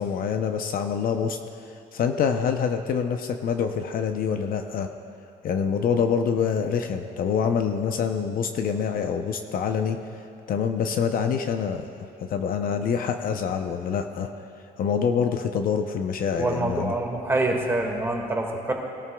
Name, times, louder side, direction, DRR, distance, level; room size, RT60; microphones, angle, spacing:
voice 1, 0.0-1.4 1.9-4.9 5.4-10.0 10.5-11.9 12.2-14.3 14.8-16.9, left 7 dB, 55° left, 6 dB, 0.7 m, -26 dB
voice 2, 16.4-18.7, right 2 dB, 15° right, 0 dB, 1.9 m, -26 dB
20.5 x 12.5 x 2.3 m, 2.5 s
cardioid pair, 110°, 17 cm